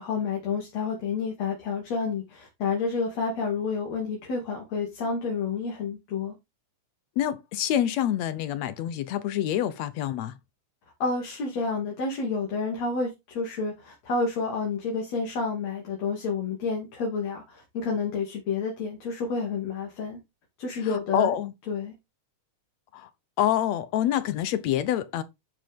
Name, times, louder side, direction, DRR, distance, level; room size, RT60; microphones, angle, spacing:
voice 1, 0.0-6.3 11.0-20.2 20.6-21.3 21.7-21.9, left 4 dB, 55° left, 3.6 m, -29 dB
voice 2, 7.2-10.4 20.8-21.5 22.9-23.1 23.4-25.2, left 11 dB, 70° left, 1.8 m, -26 dB
10.5 x 6.6 x 3.6 m
omnidirectional pair, 3.7 m